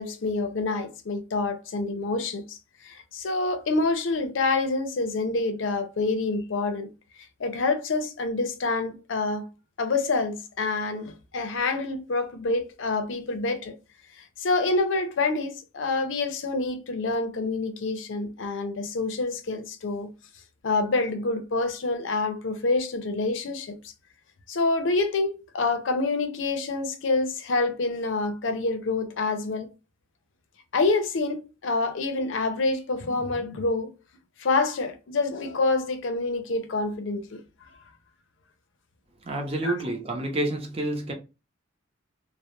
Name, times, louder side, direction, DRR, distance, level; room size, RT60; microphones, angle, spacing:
voice 1, 0.0-6.9 7.4-9.5 9.8-13.8 14.2-20.1 20.6-23.9 24.5-29.7 30.7-33.9 34.4-37.4 39.6-39.7, left 3 dB, 75° left, 0.5 m, -27 dB
voice 2, 39.2-41.1, right 1 dB, 30° right, 0.6 m, -29 dB
2.3 x 2.1 x 2.9 m
head